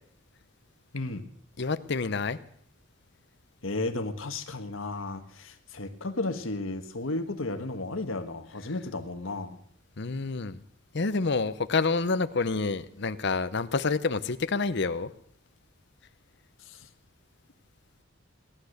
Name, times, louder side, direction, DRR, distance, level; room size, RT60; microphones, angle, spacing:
voice 1, 0.9-1.3 3.6-9.6 16.7-16.9, left 2 dB, 85° left, 7 dB, 1.5 m, -33 dB
voice 2, 1.6-2.4 10.0-10.6 10.9-15.1, left 4 dB, 60° left, 13 dB, 0.8 m, -28 dB
18.0 x 12.0 x 6.6 m, 0.64 s
head